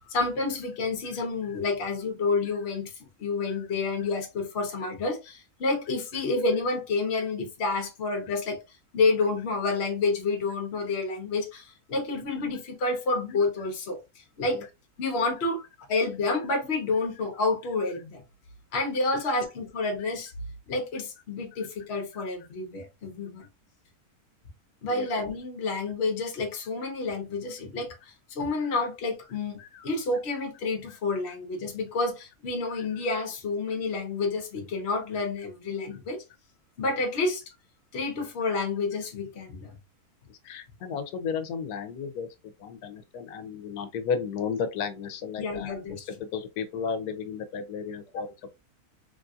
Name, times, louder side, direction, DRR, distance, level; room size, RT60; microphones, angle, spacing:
voice 1, 0.1-2.9 3.2-8.6 8.9-14.7 15.0-15.6 15.9-18.2 18.7-20.3 20.7-23.5 24.8-29.6 29.8-36.2 36.8-37.4 37.9-39.7 45.4-46.1 48.1-48.2, left 3 dB, 50° left, 1.0 m, -29 dB
voice 2, 29.6-29.9 30.9-31.0 31.3-31.4 32.7-32.9 40.3-42.3 42.6-48.3, left 6 dB, 85° left, 1.1 m, -34 dB
3.4 x 2.6 x 2.3 m
omnidirectional pair, 1.6 m